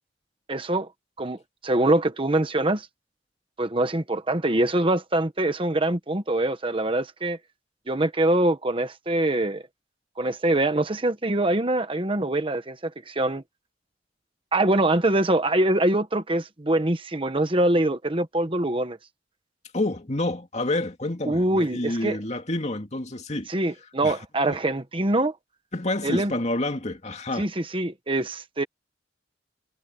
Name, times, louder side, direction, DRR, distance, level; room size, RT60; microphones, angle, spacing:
voice 1, 0.5-0.9 1.2-2.9 3.6-7.4 7.9-9.6 10.2-13.4 14.5-19.0 21.2-22.2 23.5-25.3 26.0-26.3 27.4-28.6, right 1 dB, 30° right, 1.2 m, -24 dB
voice 2, 19.7-23.5 24.0-24.2 25.7-27.5, left 2 dB, 40° left, 2.5 m, -28 dB
head